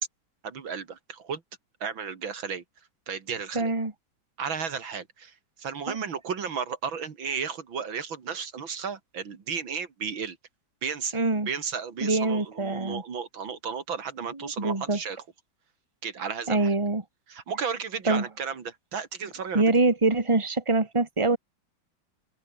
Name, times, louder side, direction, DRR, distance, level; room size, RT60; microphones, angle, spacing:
voice 1, 0.4-1.4 1.8-2.6 3.1-3.7 4.4-5.3 5.6-10.4 10.8-11.2 11.5-15.2 16.0-16.7 17.3-19.7, right 6 dB, 80° right, 3.1 m, -33 dB
voice 2, 3.5-3.9 5.9-6.0 11.1-11.5 12.0-13.0 14.4-15.0 16.5-17.0 18.1-18.2 19.5-21.4, right 3 dB, 15° right, 2.4 m, -24 dB
open air
omnidirectional pair, 2.1 m